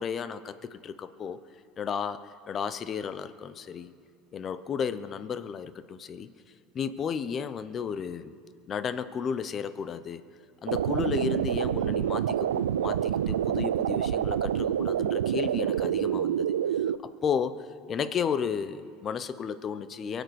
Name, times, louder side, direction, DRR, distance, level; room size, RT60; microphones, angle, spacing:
voice 1, 0.0-1.4 1.8-3.9 4.3-6.3 6.7-8.3 8.7-10.2 10.6-16.5 17.2-20.2, left 7 dB, 40° left, 13 dB, 0.8 m, -33 dB
sound 1, 10.7-17.0, right 10 dB, 90° right, 0.4 m, -27 dB
23.0 x 8.0 x 6.5 m, 2.2 s
hypercardioid pair, 85°, 0 cm